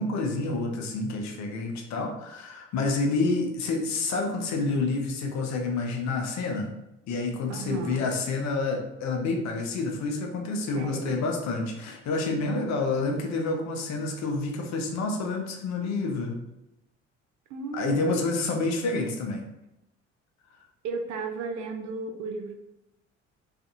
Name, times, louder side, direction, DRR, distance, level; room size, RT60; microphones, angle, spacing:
voice 1, 0.0-6.7 7.1-16.4 17.7-19.4, left 3 dB, 55° left, 2 dB, 0.6 m, -28 dB
voice 2, 7.5-8.0 10.7-11.4 12.5-12.7 17.5-18.2 20.8-22.5, right 4 dB, 55° right, 5 dB, 0.5 m, -35 dB
2.5 x 2.4 x 2.5 m, 0.89 s
hypercardioid pair, 50°, 34 cm